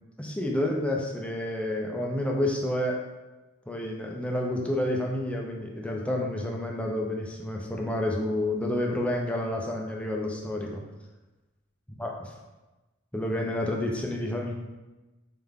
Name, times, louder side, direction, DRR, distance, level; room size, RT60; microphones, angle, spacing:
voice 1, 0.2-3.0 3.7-10.8 12.0-12.1 13.1-14.5, left 1 dB, 5° left, 0 dB, 0.5 m, -29 dB
3.6 x 3.3 x 3.5 m, 1.1 s
head